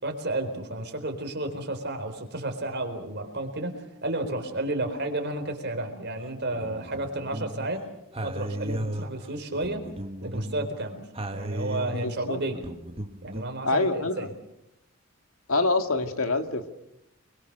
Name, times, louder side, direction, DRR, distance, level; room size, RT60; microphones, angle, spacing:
voice 1, 0.0-7.8 8.2-9.8 10.2-11.0 11.3-12.6 13.2-14.3, right 2 dB, 50° right, 5 dB, 4.3 m, -32 dB
sound 1, 6.2-7.7 8.1-10.7 11.1-13.5, right 1 dB, 25° right, 1.4 m, -35 dB
voice 2, 11.9-12.4 13.6-14.3 15.5-16.7, left 2 dB, 70° left, 7 dB, 2.1 m, -26 dB
29.5 x 22.5 x 6.8 m, 0.83 s
head